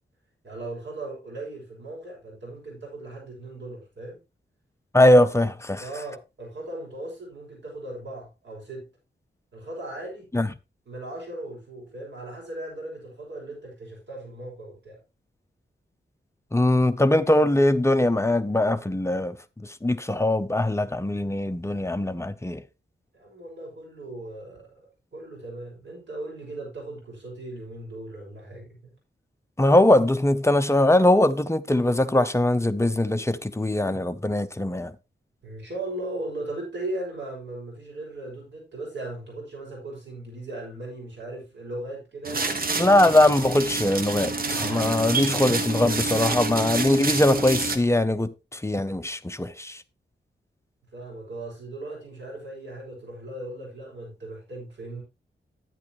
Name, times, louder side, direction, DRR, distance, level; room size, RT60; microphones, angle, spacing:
voice 1, 0.4-4.2 5.8-8.8 9.5-10.3 10.9-15.0 23.1-24.7 25.1-28.9 35.4-42.5 50.9-55.0, right 2 dB, 65° right, 6.1 m, -37 dB
voice 2, 4.9-5.8 10.3-10.5 16.5-19.4 19.6-22.6 29.6-34.9 42.8-49.8, left 1 dB, 15° left, 0.6 m, -21 dB
sound 1, 42.2-47.8, right 3 dB, 50° right, 1.2 m, -28 dB
11.0 x 9.6 x 3.0 m
wide cardioid pair, 140°, 20 cm